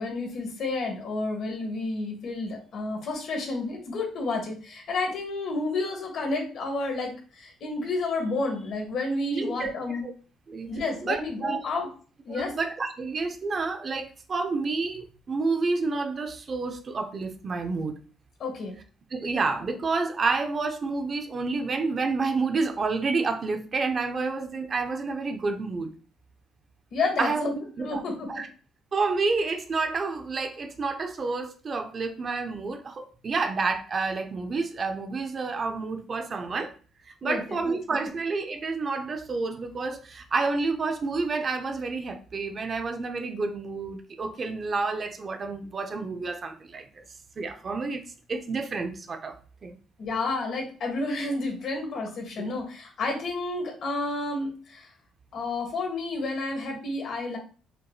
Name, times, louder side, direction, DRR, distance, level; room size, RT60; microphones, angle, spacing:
voice 1, 0.0-10.0 10.7-11.9 12.3-12.5 18.4-18.8 26.9-28.4 37.2-37.6 50.0-54.9 55.3-57.4, left 3 dB, 60° left, 1 dB, 1.5 m, -30 dB
voice 2, 9.3-9.7 10.0-10.1 10.5-10.7 11.0-11.6 12.3-18.0 19.1-25.9 27.2-28.0 28.3-28.5 28.9-36.7 37.1-47.0 47.4-48.0 48.3-49.8, right 4 dB, 35° right, 6 dB, 0.5 m, -29 dB
5.1 x 2.9 x 2.3 m, 0.39 s
cardioid pair, 115°, 0 cm